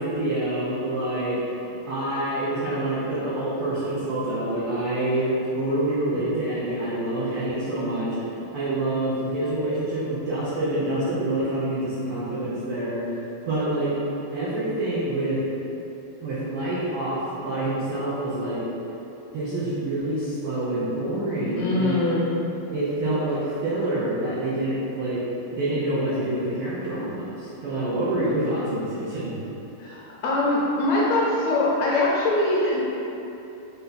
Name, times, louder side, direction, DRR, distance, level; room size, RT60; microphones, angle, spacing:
voice 1, 0.0-8.2 8.5-13.0 13.5-14.0 14.3-15.4 16.2-18.6 19.3-22.1 22.7-25.2 25.5-29.4, right 1 dB, 85° right, -10 dB, 1.2 m, -27 dB
voice 2, 21.6-22.3 29.8-33.0, left 2 dB, 75° left, -6 dB, 1.6 m, -23 dB
5.2 x 2.3 x 3.9 m, 2.9 s
omnidirectional pair, 3.5 m